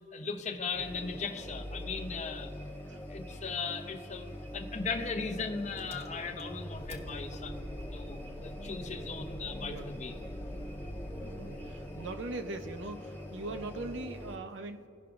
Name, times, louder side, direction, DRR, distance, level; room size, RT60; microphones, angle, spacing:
voice 1, 0.1-2.5 3.1-7.6 7.9-10.1 10.5-10.6, left 4 dB, 40° left, 5 dB, 0.7 m, -38 dB
sound 1, 0.7-14.3, equal, 10° left, 0.8 m, -43 dB
Engine, 5.8-12.1, equal, 35° right, 0.9 m, -48 dB
voice 2, 11.4-14.9, right 2 dB, 75° right, 7 dB, 0.6 m, -40 dB
17.5 x 5.8 x 2.5 m, 2.5 s
head